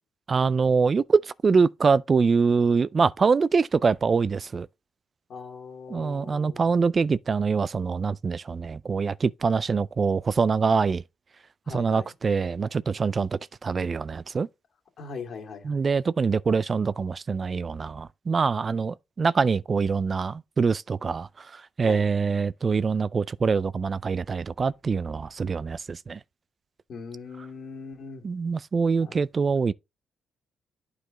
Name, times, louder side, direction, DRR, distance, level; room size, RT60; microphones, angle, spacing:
voice 1, 0.3-4.7 5.9-11.0 11.7-14.5 15.7-26.2 28.2-29.7, right 5 dB, 35° right, 0.3 m, -24 dB
voice 2, 5.3-6.7 11.7-12.1 15.0-15.8 21.8-22.1 26.9-28.2 29.0-29.2, left 5 dB, 60° left, 2.5 m, -40 dB
9.1 x 4.9 x 3.7 m
cardioid pair, 90°, 0 cm